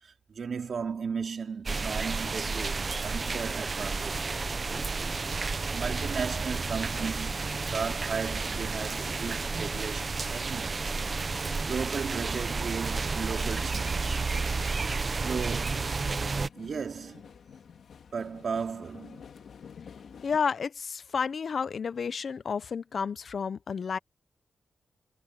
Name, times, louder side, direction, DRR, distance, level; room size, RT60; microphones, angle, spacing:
voice 1, 0.0-4.5 5.7-10.9 11.6-14.2 14.8-16.0 16.5-17.3 18.1-19.2, right 6 dB, 55° right, 4.0 m, -36 dB
sound 1, 1.7-16.5, right 4 dB, 35° right, 0.7 m, -31 dB
sound 2, 3.9-20.4, left 7 dB, 70° left, 1.9 m, -51 dB
voice 2, 20.2-24.0, left 6 dB, 50° left, 0.5 m, -31 dB
wide cardioid pair, 150°, 0 cm